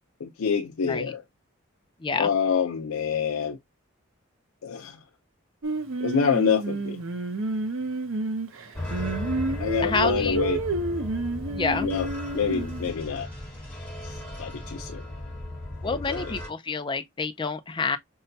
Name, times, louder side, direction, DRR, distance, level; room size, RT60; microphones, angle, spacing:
voice 1, 0.2-1.2 2.2-3.6 4.6-5.0 6.0-7.0 9.6-10.6 11.8-12.1 12.3-13.3 14.4-15.0 15.9-16.3, left 6 dB, 90° left, 0.5 m, -26 dB
voice 2, 2.0-2.3 9.5-10.4 11.5-11.9 15.8-18.0, left 4 dB, 25° left, 0.4 m, -28 dB
Singing, 5.6-12.9, right 2 dB, 75° right, 0.7 m, -30 dB
sound 1, 8.7-16.5, left 1 dB, 5° left, 1.1 m, -36 dB
5.5 x 2.2 x 2.6 m
head